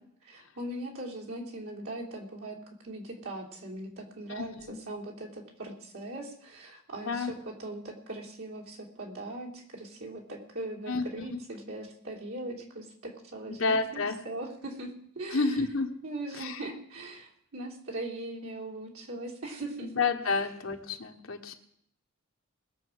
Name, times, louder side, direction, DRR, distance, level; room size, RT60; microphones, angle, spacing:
voice 1, 0.3-15.5 16.0-19.9, right 2 dB, 85° right, -3 dB, 3.2 m, -40 dB
voice 2, 4.4-4.8 7.0-7.3 10.9-11.4 13.5-14.2 15.3-15.9 16.3-16.6 19.8-21.5, left 4 dB, 70° left, 4 dB, 1.4 m, -30 dB
20.5 x 7.2 x 6.2 m, 0.69 s
head